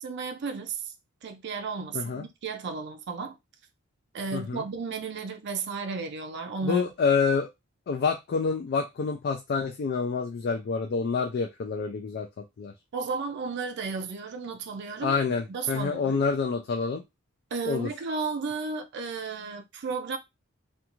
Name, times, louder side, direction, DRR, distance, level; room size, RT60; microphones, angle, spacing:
voice 1, 0.0-0.9 1.2-3.4 4.1-6.8 12.9-15.2 15.5-16.2 17.5-20.2, right 4 dB, 55° right, 0.4 m, -33 dB
voice 2, 1.9-2.3 4.3-4.6 6.6-7.5 7.9-12.7 15.0-17.0 17.6-17.9, left 5 dB, 50° left, 0.3 m, -27 dB
2.5 x 2.3 x 2.9 m
head